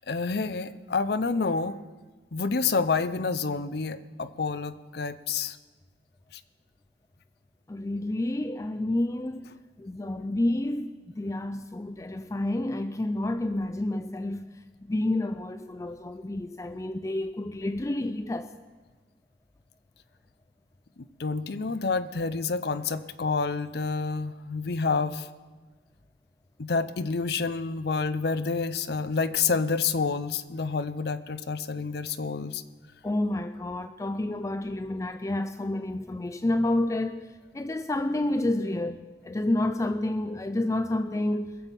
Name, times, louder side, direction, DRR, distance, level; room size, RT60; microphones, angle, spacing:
voice 1, 0.1-1.8 2.3-5.6 21.2-25.3 26.6-32.6, left 4 dB, 60° left, 0.6 m, -28 dB
voice 2, 7.7-9.4 9.8-14.5 14.9-18.5 33.0-37.3 37.5-41.5, left 1 dB, 15° left, 0.3 m, -29 dB
21.0 x 7.2 x 5.4 m
head